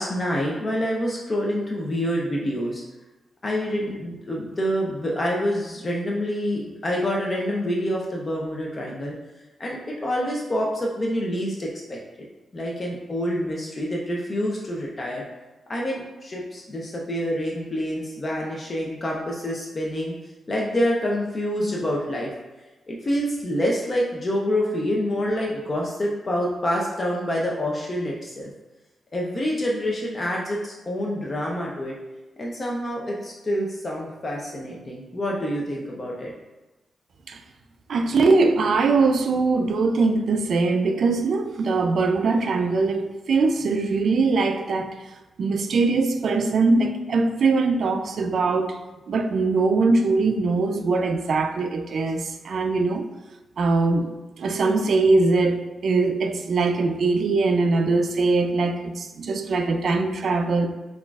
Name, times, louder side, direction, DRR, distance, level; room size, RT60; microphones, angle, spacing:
voice 1, 0.0-2.8 3.4-9.1 9.6-12.0 12.5-15.2 15.7-20.1 20.5-22.3 22.9-28.5 29.1-31.9 32.4-36.3, equal, 30° left, 0.5 m, -27 dB
voice 2, 37.9-44.9 45.4-48.8 49.1-53.1 53.6-54.1 54.4-60.7, right 3 dB, 60° right, 0.3 m, -21 dB
5.9 x 2.4 x 2.3 m
wide cardioid pair, 130°, 0 cm